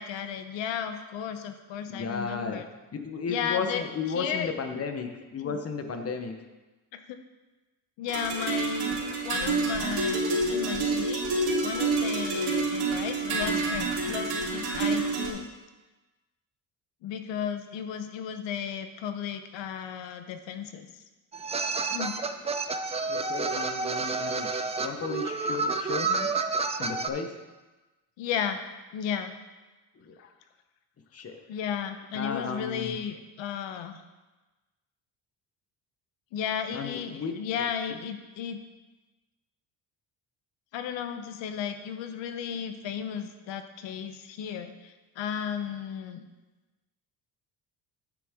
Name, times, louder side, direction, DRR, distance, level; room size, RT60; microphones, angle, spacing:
voice 1, 0.0-2.7 3.3-4.5 5.4-5.6 6.9-7.2 8.0-15.5 17.0-21.0 21.9-22.1 28.2-28.6 28.9-29.3 31.5-34.0 36.3-38.6 40.7-46.2, left 8 dB, 85° left, 8 dB, 0.9 m, -34 dB
voice 2, 1.9-2.6 2.9-6.3 23.1-24.5 24.8-26.3 26.8-27.3 30.0-30.1 31.1-31.4 32.1-33.0 36.7-37.6, left 5 dB, 35° left, 6 dB, 0.9 m, -34 dB
sound 1, 8.1-15.3, right 3 dB, 60° right, 3.0 m, -28 dB
sound 2, 21.3-27.1, right 4 dB, 15° right, 0.3 m, -30 dB
9.4 x 7.0 x 3.6 m, 1.2 s
cardioid pair, 125°, 44 cm